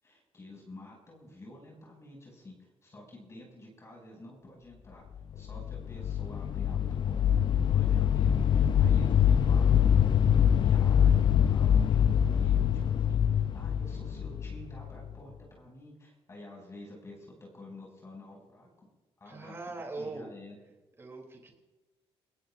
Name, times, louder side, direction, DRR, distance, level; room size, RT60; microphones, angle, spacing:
voice 1, 0.0-5.0 5.3-11.2 11.5-18.7 19.2-20.6, left 1 dB, 25° left, -2 dB, 6.8 m, -50 dB
sound 1, 5.3-15.1, left 9 dB, 50° left, 0.5 m, -24 dB
voice 2, 19.2-20.3 21.0-21.5, right 3 dB, 25° right, 2 dB, 3.2 m, -41 dB
29.0 x 17.5 x 2.6 m, 1.2 s
cardioid pair, 150°, 11 cm